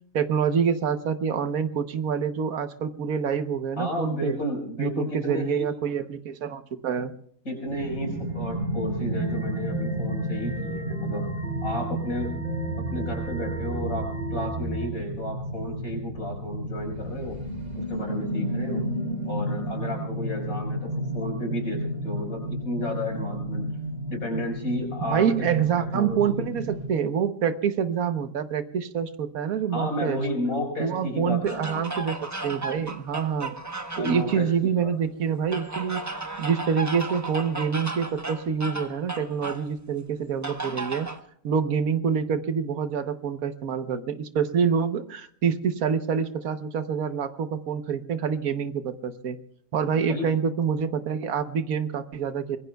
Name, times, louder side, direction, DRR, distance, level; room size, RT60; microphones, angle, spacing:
voice 1, 0.1-4.4 4.8-7.2 25.1-30.2 30.8-33.5 34.0-36.0 36.4-41.1 41.4-49.4 49.7-52.6, right 7 dB, 90° right, 10 dB, 1.4 m, -26 dB
voice 2, 3.8-5.7 7.5-11.3 11.6-12.3 12.9-17.4 17.8-18.8 19.3-23.7 24.1-26.5 29.7-31.8 34.0-34.9 50.1-50.3, left 1 dB, 80° left, 1 dB, 5.5 m, -32 dB
sound 1, 7.6-26.9, right 1 dB, 40° right, 6.0 m, -32 dB
sound 2, 9.2-14.9, right 2 dB, 5° left, 2.8 m, -34 dB
sound 3, 31.5-34.4 35.5-39.7 40.4-41.2, right 2 dB, 15° right, 0.9 m, -34 dB
25.0 x 21.5 x 2.3 m, 0.64 s
omnidirectional pair, 1.5 m